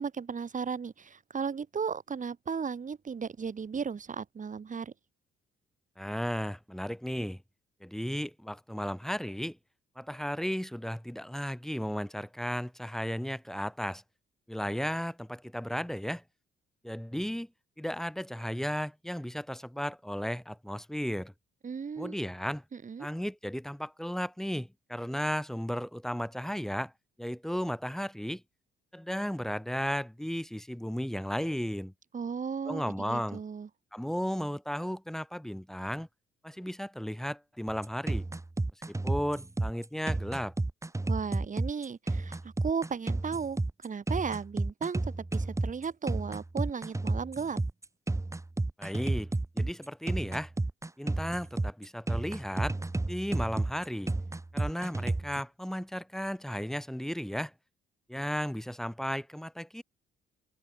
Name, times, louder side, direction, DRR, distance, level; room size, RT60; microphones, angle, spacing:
voice 1, 0.0-4.9 21.6-22.2 22.7-23.1 32.1-33.7 41.1-47.6, right 6 dB, 40° right, 4.2 m, -35 dB
voice 2, 6.0-7.4 7.8-9.6 10.0-14.0 14.5-16.2 16.8-17.5 17.8-21.3 22.0-22.6 23.0-26.9 27.2-28.4 28.9-31.9 32.6-33.4 33.9-36.1 36.4-38.2 38.9-40.5 48.8-50.5 51.0-52.8 53.1-54.1 54.5-57.5 58.1-59.8, equal, ahead, 3.0 m, -34 dB
sound 1, 37.7-55.4, right 2 dB, 15° right, 3.2 m, -32 dB
cardioid pair, 90°, 20 cm